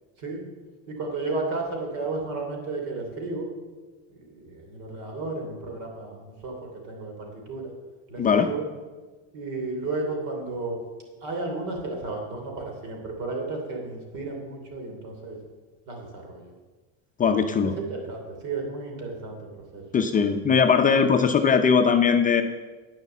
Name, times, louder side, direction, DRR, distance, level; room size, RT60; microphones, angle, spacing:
voice 1, 0.9-3.5 4.3-7.7 8.1-8.6 9.3-10.8 11.2-15.4 15.9-16.5 17.8-19.8, right 3 dB, 60° right, 2 dB, 3.2 m, -33 dB
voice 2, 8.2-8.5 17.2-17.8 19.9-22.4, left 6 dB, 25° left, 6 dB, 0.6 m, -20 dB
9.4 x 6.7 x 7.3 m, 1.3 s
supercardioid pair, 120°, 35 cm